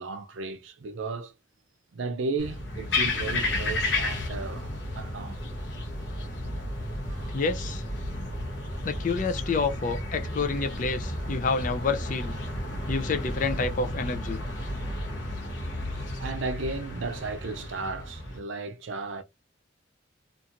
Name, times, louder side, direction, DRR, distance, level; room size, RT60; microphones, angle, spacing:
voice 1, 0.0-1.3 1.9-5.4 7.2-7.3 16.2-19.2, right 3 dB, 75° right, 0.5 m, -34 dB
sound 1, 2.4-18.4, left 1 dB, 65° left, 0.8 m, -32 dB
voice 2, 7.3-7.8 8.8-12.4 12.9-14.4, left 4 dB, 40° left, 0.4 m, -28 dB
2.8 x 2.5 x 2.5 m
head